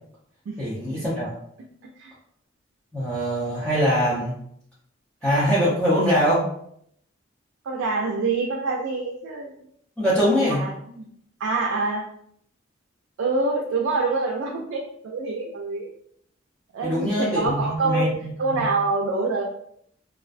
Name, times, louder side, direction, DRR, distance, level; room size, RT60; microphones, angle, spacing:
voice 1, 0.6-1.3 2.9-4.3 5.2-6.4 10.0-10.6 16.8-18.3 18.6-18.7, equal, 5° left, -11 dB, 0.5 m, -22 dB
voice 2, 7.6-9.5 10.2-11.1 11.4-12.1 13.2-15.9 16.7-18.1 18.4-19.4, right 3 dB, 80° right, 0 dB, 0.3 m, -26 dB
2.3 x 2.1 x 2.4 m, 0.70 s
head